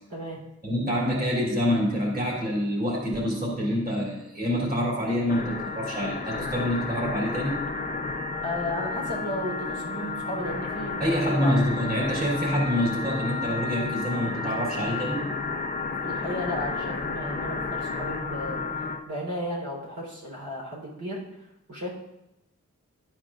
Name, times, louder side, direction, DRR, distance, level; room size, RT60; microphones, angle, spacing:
voice 1, 0.6-7.5 11.0-15.3, equal, 30° right, -4 dB, 3.3 m, -26 dB
sound 1, 5.3-19.0, left 4 dB, 30° left, 0.7 m, -32 dB
voice 2, 8.4-10.9 11.3-11.6 15.9-21.2 21.7-21.9, left 1 dB, 90° right, -3 dB, 3.7 m, -34 dB
12.0 x 8.9 x 2.5 m, 0.90 s
wide cardioid pair, 125°, 29 cm